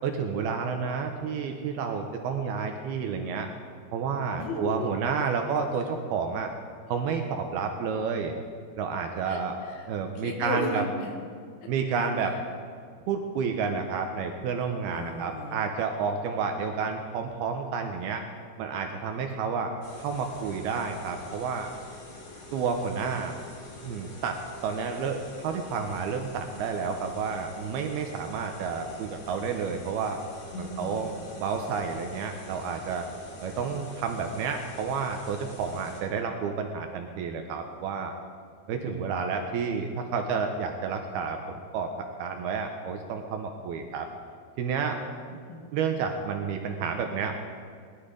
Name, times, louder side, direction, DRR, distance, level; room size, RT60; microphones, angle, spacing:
voice 1, 0.0-3.5 3.9-6.5 6.9-8.3 8.8-9.6 9.9-10.8 11.7-12.4 13.1-18.2 18.6-21.7 22.5-23.4 23.8-30.2 30.6-31.1 31.4-33.1 33.4-38.2 38.7-44.1 44.6-45.0 45.7-47.3, right 5 dB, 75° right, 4 dB, 2.4 m, -30 dB
voice 2, 4.4-4.9 9.3-9.9 10.2-11.2 12.3-12.4 14.9-15.7 30.5-31.1 45.3-45.7, left 1 dB, 85° left, 2 dB, 4.0 m, -35 dB
sound 1, 19.8-36.0, left 2 dB, 45° left, 4.0 m, -46 dB
20.0 x 12.0 x 5.1 m, 2.1 s
omnidirectional pair, 5.2 m